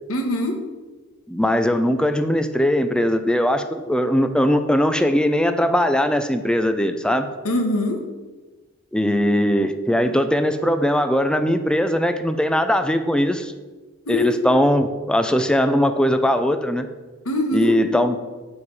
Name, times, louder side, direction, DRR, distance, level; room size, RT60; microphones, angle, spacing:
voice 1, 0.1-0.6 7.4-8.0 14.1-14.7 17.2-17.7, left 1 dB, 75° left, 3 dB, 1.5 m, -23 dB
voice 2, 1.3-7.3 8.9-13.5 14.1-16.9 17.5-18.2, equal, 5° left, 9 dB, 0.5 m, -20 dB
9.1 x 7.1 x 4.8 m, 1.2 s
head